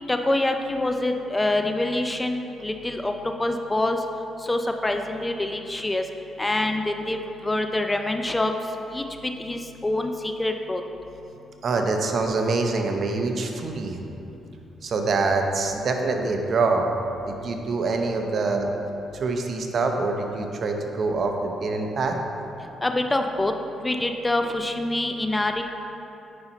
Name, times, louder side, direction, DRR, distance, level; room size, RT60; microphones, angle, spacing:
voice 1, 0.1-3.1 3.4-4.0 4.4-6.0 6.4-8.5 8.9-9.1 9.4-10.8 22.8-23.5 23.8-25.6, left 2 dB, 15° left, 5 dB, 0.4 m, -25 dB
voice 2, 11.6-14.0 14.8-16.9 17.3-18.7 19.2-22.2, right 3 dB, 55° right, 3 dB, 0.7 m, -25 dB
9.6 x 5.5 x 3.0 m, 2.9 s
cardioid pair, 90°, 0 cm